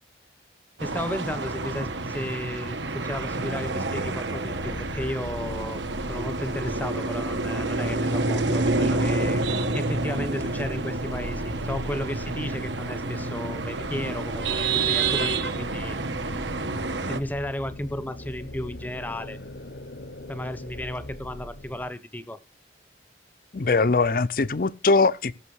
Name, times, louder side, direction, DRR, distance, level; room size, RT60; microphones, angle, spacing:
voice 1, 0.8-5.8 6.1-9.4 9.7-16.0 17.1-19.4 20.3-22.4, left 1 dB, 10° left, 0.7 m, -34 dB
sound 1, 0.8-17.2, right 3 dB, 80° right, 1.3 m, -28 dB
sound 2, 4.4-21.9, left 1 dB, 70° left, 1.1 m, -40 dB
voice 2, 23.5-25.3, left 3 dB, 50° left, 0.6 m, -21 dB
17.0 x 6.1 x 4.8 m
head